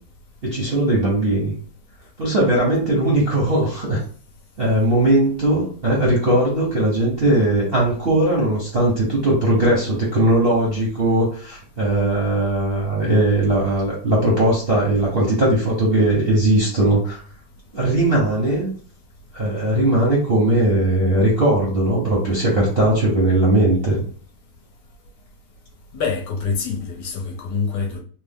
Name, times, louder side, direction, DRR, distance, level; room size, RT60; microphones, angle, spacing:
voice 1, 0.4-1.5 2.2-4.0 4.6-17.2 17.7-18.7 19.3-24.0, right 1 dB, 45° right, 0.7 m, -19 dB
voice 2, 25.9-28.0, left 5 dB, 70° left, 1.2 m, -25 dB
3.3 x 2.1 x 3.5 m
omnidirectional pair, 2.2 m